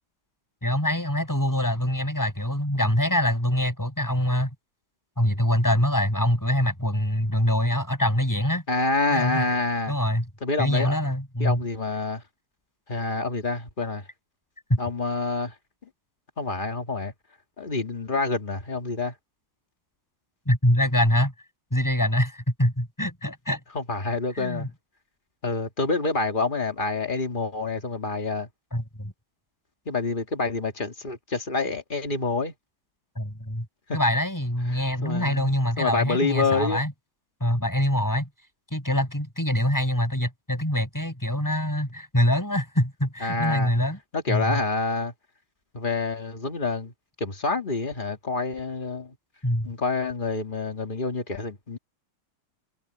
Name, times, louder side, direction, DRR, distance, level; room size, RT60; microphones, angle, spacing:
voice 1, 0.6-4.5 5.2-8.6 9.1-9.6 9.9-10.2 10.6-11.6 14.7-14.8 20.5-21.3 21.7-23.6 24.4-24.7 28.7-29.1 33.1-33.6 33.9-36.9 37.4-38.3 38.7-44.0 44.3-44.6 49.4-49.7, left 1 dB, 10° left, 6.7 m, -24 dB
voice 2, 8.7-9.9 10.4-10.9 11.4-12.2 12.9-14.0 14.8-15.5 16.4-17.1 17.6-19.1 23.7-24.7 25.4-28.5 29.9-32.5 33.9-34.0 35.0-35.5 35.8-36.8 43.2-43.7 44.1-45.1 45.7-46.9 47.2-49.1 49.6-51.8, left 3 dB, 25° left, 1.8 m, -27 dB
omnidirectional pair, 2.3 m